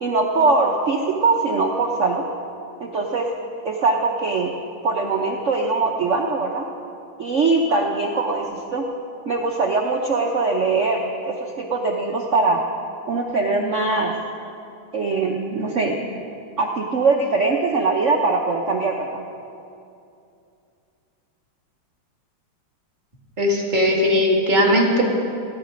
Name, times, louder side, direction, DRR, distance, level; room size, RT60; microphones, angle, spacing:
voice 1, 0.0-2.3 2.8-3.3 3.6-4.5 4.8-6.7 7.2-8.8 9.3-12.6 13.1-14.1 14.9-16.0 16.6-19.2, right 3 dB, 70° right, 1 dB, 0.7 m, -21 dB
voice 2, 23.4-25.1, left 1 dB, 20° right, -3 dB, 2.0 m, -18 dB
17.0 x 10.0 x 5.2 m, 2.6 s
omnidirectional pair, 2.4 m